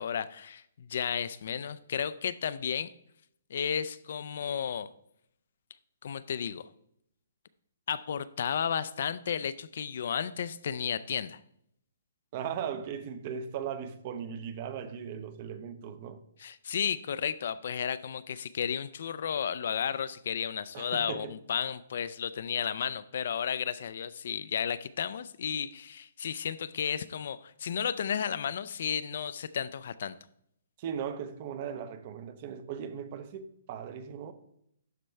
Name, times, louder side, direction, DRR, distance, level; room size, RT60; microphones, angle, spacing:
voice 1, 0.0-2.9 3.5-4.9 6.0-6.7 7.9-11.4 16.4-30.2, left 8 dB, 55° left, 0.3 m, -33 dB
voice 2, 12.3-16.2 20.7-21.3 30.8-34.3, right 8 dB, 35° right, 0.6 m, -38 dB
11.5 x 4.4 x 3.3 m
hypercardioid pair, 165°, 0 cm